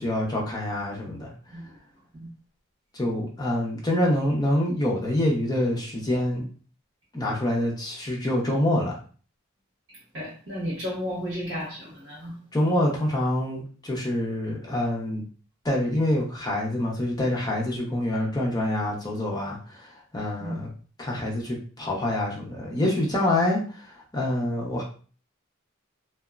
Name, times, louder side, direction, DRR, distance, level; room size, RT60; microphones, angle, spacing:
voice 1, 0.0-1.3 2.9-6.4 7.1-8.9 12.5-15.2 15.6-19.9 20.1-20.7 21.0-23.8 24.1-24.8, left 1 dB, 20° left, -2 dB, 0.6 m, -26 dB
voice 2, 9.9-12.3 20.4-20.6, equal, 70° right, -9 dB, 1.3 m, -34 dB
2.8 x 2.1 x 2.3 m, 0.40 s
head